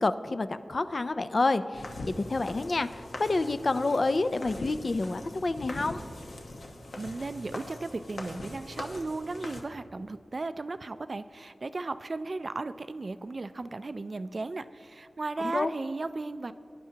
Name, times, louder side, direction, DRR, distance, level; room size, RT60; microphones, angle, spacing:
voice 1, 0.0-1.9 2.2-6.0 15.4-15.7, left 3 dB, 45° left, 11 dB, 0.4 m, -28 dB
sound 1, 1.7-9.6, left 2 dB, 75° left, 1.1 m, -42 dB
voice 2, 7.0-16.5, right 3 dB, 45° right, 13 dB, 0.3 m, -36 dB
20.5 x 10.5 x 2.8 m, 2.4 s
wide cardioid pair, 105°, 0 cm